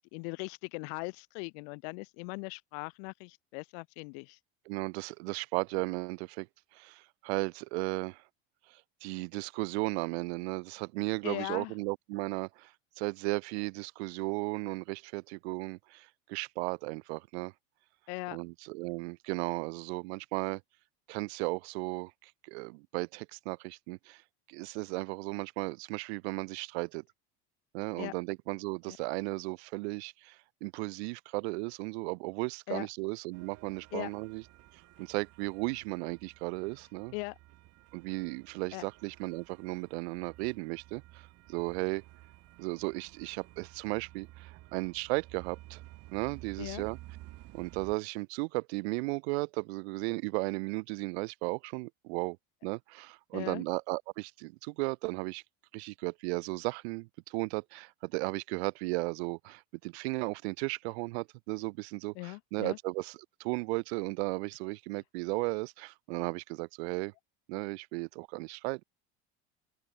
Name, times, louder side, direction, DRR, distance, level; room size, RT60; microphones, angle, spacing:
voice 1, 0.0-4.4 11.2-11.7 18.1-18.4 28.0-28.1 28.9-29.0 32.7-32.9 33.9-34.1 37.1-37.4 38.7-38.9 46.6-46.9 53.3-53.6 62.1-62.8, left 38 dB, 75° left, 2.2 m, -39 dB
voice 2, 4.7-6.5 6.7-8.2 8.7-17.5 18.3-20.6 21.1-24.2 24.5-27.0 27.7-34.4 34.7-37.1 37.9-42.0 42.6-45.8 46.1-47.0 47.5-52.4 52.6-55.4 55.7-67.1 67.5-68.8, right 26 dB, 90° right, 0.7 m, -35 dB
sound 1, 33.3-48.0, right 18 dB, 50° right, 1.5 m, -53 dB
open air
cardioid pair, 140°, 32 cm